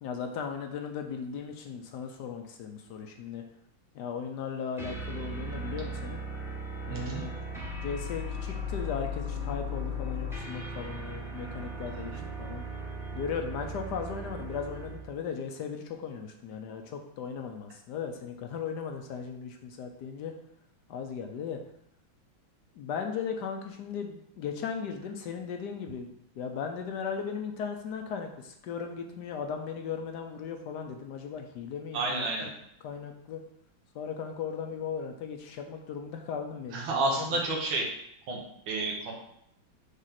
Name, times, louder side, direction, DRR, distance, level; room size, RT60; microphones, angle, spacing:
voice 1, 0.0-3.4 3.9-6.2 6.9-7.3 7.8-12.6 13.1-20.3 20.9-21.6 22.8-32.5 32.8-33.4 33.9-37.4, left 6 dB, 65° left, 4 dB, 1.1 m, -37 dB
sound 1, 4.8-15.1, left 1 dB, ahead, 0.9 m, -37 dB
voice 2, 6.9-7.2 31.9-32.5 36.7-37.9 38.3-39.1, right 2 dB, 85° right, -2 dB, 2.0 m, -30 dB
5.1 x 3.6 x 5.8 m, 0.74 s
omnidirectional pair, 2.2 m